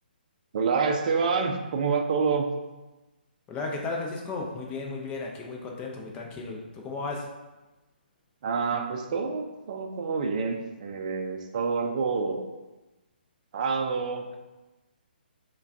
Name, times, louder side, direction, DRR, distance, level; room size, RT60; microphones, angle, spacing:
voice 1, 0.5-2.5 8.4-12.4 13.5-14.4, right 5 dB, 45° right, 4 dB, 0.4 m, -27 dB
voice 2, 3.5-7.3, left 3 dB, 15° left, 0 dB, 0.5 m, -34 dB
4.4 x 2.3 x 2.6 m, 1.1 s
hypercardioid pair, 145°, 6 cm